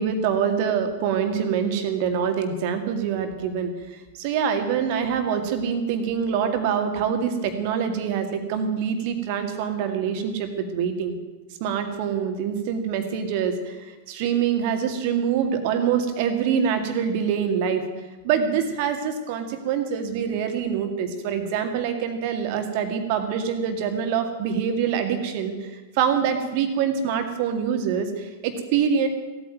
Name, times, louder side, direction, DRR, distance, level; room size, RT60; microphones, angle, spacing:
voice 1, 0.0-11.2 11.6-17.8 18.2-29.1, right 7 dB, 45° right, 7 dB, 2.2 m, -25 dB
16.5 x 9.1 x 9.2 m, 1.2 s
figure-of-eight pair, 100°, 0 cm